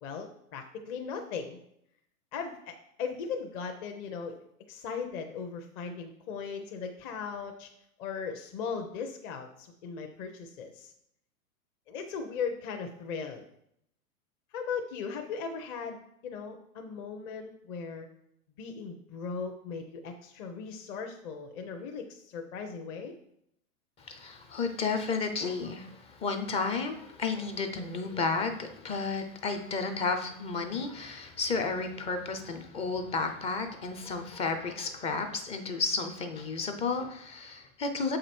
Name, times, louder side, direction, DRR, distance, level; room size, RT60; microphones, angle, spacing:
voice 1, 0.0-1.6 2.3-7.7 8.0-10.9 11.9-13.5 14.5-18.1 18.6-23.2, left 5 dB, 35° left, 4 dB, 0.8 m, -38 dB
voice 2, 24.0-38.2, left 4 dB, 15° left, 6 dB, 0.4 m, -32 dB
7.1 x 5.0 x 4.4 m, 0.73 s
hypercardioid pair, 125°, 45 cm